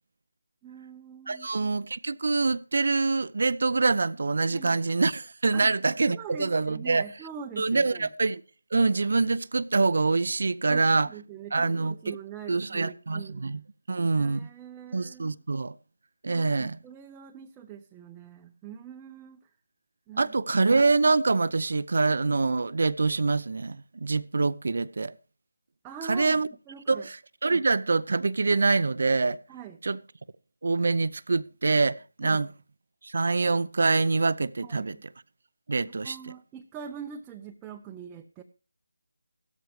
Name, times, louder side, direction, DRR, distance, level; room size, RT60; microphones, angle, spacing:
voice 1, 0.6-1.7 4.5-4.8 5.5-5.7 6.1-8.1 10.6-13.5 14.1-15.4 16.3-19.5 20.1-20.3 25.8-26.4 26.7-27.1 29.5-29.8 32.2-32.4 34.6-35.0 36.0-38.4, right 7 dB, 10° right, 0.8 m, -43 dB
voice 2, 1.3-7.0 7.6-8.4 8.7-11.1 11.5-12.2 12.5-13.6 13.9-14.5 14.9-15.7 16.2-16.8 20.2-25.1 26.0-26.5 26.9-27.2 27.4-29.4 29.8-30.0 30.6-32.5 33.0-35.0 35.7-36.2, right 3 dB, 60° right, 0.6 m, -25 dB
16.0 x 13.5 x 3.3 m
figure-of-eight pair, 160°, 0 cm